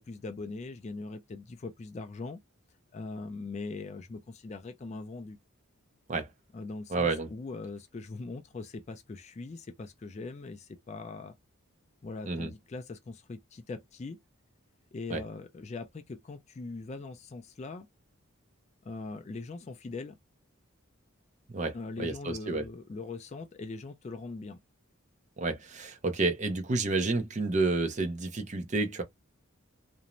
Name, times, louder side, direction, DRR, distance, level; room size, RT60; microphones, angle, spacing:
voice 1, 0.0-2.4 2.9-5.4 6.5-11.3 12.0-14.2 14.9-17.9 18.8-20.2 21.7-24.6, left 3 dB, 30° left, 0.3 m, -41 dB
voice 2, 6.9-7.3 12.3-12.5 15.1-15.2 21.5-22.6 25.4-29.0, right 3 dB, 35° right, 0.5 m, -30 dB
2.5 x 2.0 x 2.9 m
head